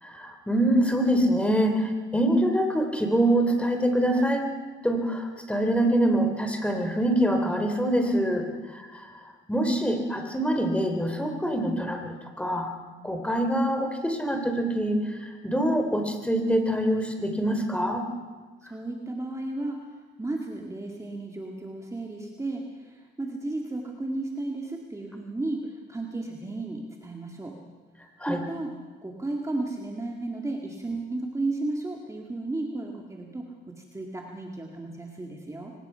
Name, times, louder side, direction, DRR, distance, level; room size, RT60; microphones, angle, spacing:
voice 1, 0.0-4.5 4.8-8.4 9.0-9.1 9.5-12.7 13.0-18.1 28.2-28.4, right 1 dB, 5° left, 5 dB, 3.6 m, -25 dB
voice 2, 18.6-27.6 28.3-28.8 29.0-35.7, right 2 dB, 15° right, 0 dB, 2.3 m, -34 dB
23.5 x 19.5 x 5.8 m, 1.4 s
cardioid pair, 90°, 20 cm